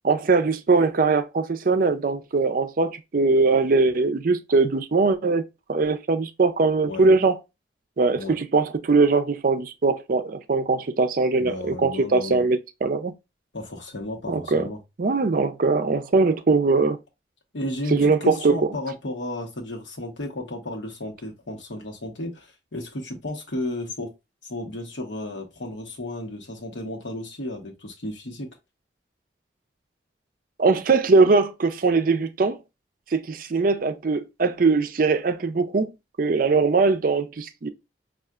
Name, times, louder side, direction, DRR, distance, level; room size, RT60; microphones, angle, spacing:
voice 1, 0.0-5.4 5.7-7.4 8.0-13.1 14.3-14.7 15.0-17.0 17.9-18.7 30.6-32.6 33.1-35.9 36.2-37.7, right 4 dB, 50° right, 0.4 m, -21 dB
voice 2, 11.4-12.5 13.5-14.8 17.5-24.1 24.4-28.5, left 1 dB, 80° left, 1.0 m, -33 dB
5.4 x 2.3 x 2.4 m
head